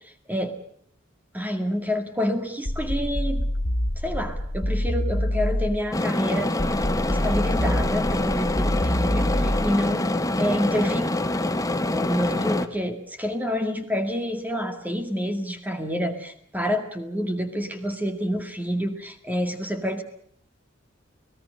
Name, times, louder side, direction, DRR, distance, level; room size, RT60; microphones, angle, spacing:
voice 1, 0.3-0.6 1.3-3.5 4.0-6.5 7.1-11.0 11.9-20.0, equal, 10° right, 6 dB, 2.1 m, -28 dB
sound 1, 2.7-5.9 6.6-9.9, equal, 60° left, 2.2 m, -26 dB
sound 2, 5.9-12.7, left 2 dB, 15° left, 1.1 m, -25 dB
29.5 x 18.0 x 6.6 m, 0.65 s
head